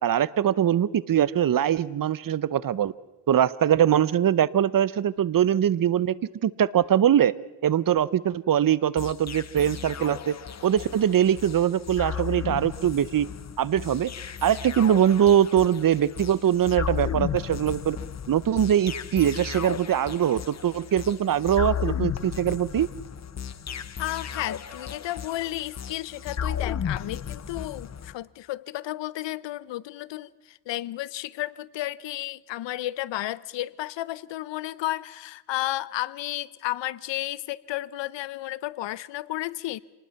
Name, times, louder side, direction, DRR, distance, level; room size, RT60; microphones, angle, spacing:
voice 1, 0.0-2.9 3.3-6.1 6.4-7.3 7.6-10.3 10.6-13.3 13.6-14.1 14.4-18.0 18.3-22.9, right 10 dB, 50° right, 0.8 m, -22 dB
sound 1, 9.0-28.1, left 8 dB, 40° left, 1.0 m, -34 dB
voice 2, 24.0-39.8, left 15 dB, 85° left, 0.7 m, -33 dB
26.5 x 19.5 x 5.8 m
cardioid pair, 90°, 42 cm